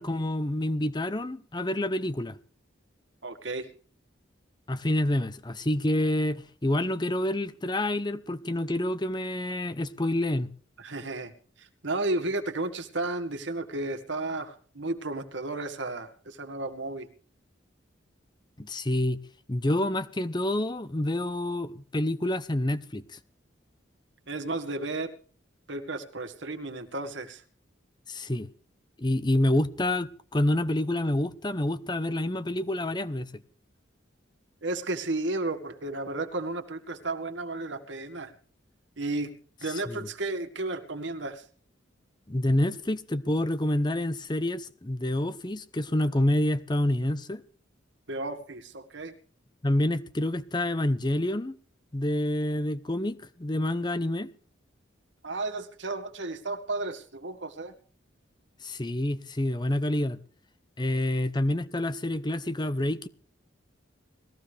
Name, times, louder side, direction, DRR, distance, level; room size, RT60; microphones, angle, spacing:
voice 1, 0.0-2.4 4.7-10.5 18.6-19.2 19.5-23.2 28.1-28.5 29.0-33.3 39.9-40.1 42.3-47.4 49.6-51.6 51.9-54.3 58.6-60.2 60.8-63.1, left 1 dB, 20° left, 0.8 m, -28 dB
voice 2, 3.2-3.7 10.8-11.3 11.6-17.1 24.3-25.1 25.7-27.4 34.6-38.4 39.0-39.3 39.6-41.4 48.1-49.2 55.2-57.7 61.1-61.2, right 2 dB, 70° right, 2.0 m, -33 dB
20.0 x 15.0 x 3.4 m
head